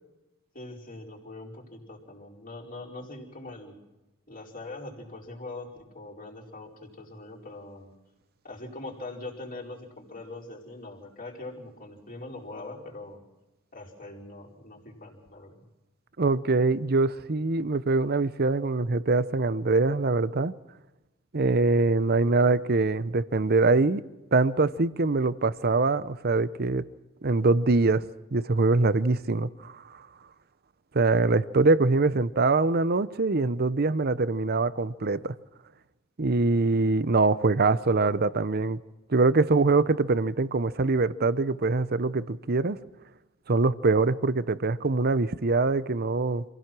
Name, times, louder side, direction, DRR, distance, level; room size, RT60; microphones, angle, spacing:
voice 1, 0.5-3.8 4.3-7.9 8.4-13.2 13.7-15.5, left 2 dB, 40° left, 4.7 m, -42 dB
voice 2, 16.2-20.5 21.3-24.0 24.3-26.8 27.2-29.8 30.9-35.3 36.2-38.8 39.1-42.8 43.5-46.4, right 3 dB, 50° right, 0.8 m, -23 dB
26.5 x 16.5 x 6.1 m
head